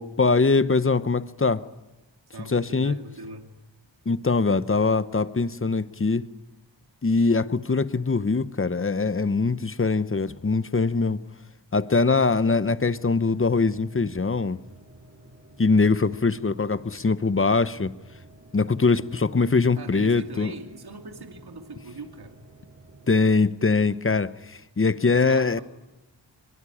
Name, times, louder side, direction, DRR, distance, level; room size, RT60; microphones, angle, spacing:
voice 1, 0.0-1.6 2.5-3.0 4.1-6.3 7.0-11.2 11.7-14.6 15.6-17.9 18.5-20.5 23.1-25.6, left 4 dB, 30° left, 0.9 m, -22 dB
voice 2, 2.3-3.6 19.7-22.4 25.1-25.6, right 2 dB, 55° right, 2.6 m, -41 dB
sound 1, 12.0-23.3, right 1 dB, 35° right, 5.2 m, -51 dB
23.5 x 22.5 x 9.9 m
wide cardioid pair, 95°, 45 cm